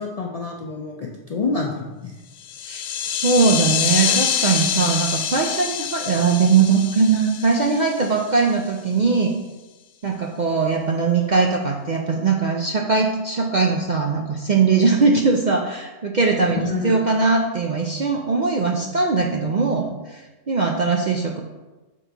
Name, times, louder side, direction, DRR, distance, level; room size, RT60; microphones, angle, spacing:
voice 1, 0.0-2.1 16.6-17.0, left 4 dB, 55° left, -1 dB, 0.4 m, -27 dB
sound 1, 2.4-8.4, left 8 dB, 85° left, 1.0 m, -26 dB
voice 2, 2.6-9.3 10.0-21.4, right 4 dB, 55° right, 1 dB, 0.5 m, -20 dB
6.3 x 4.1 x 4.5 m, 1.1 s
omnidirectional pair, 1.3 m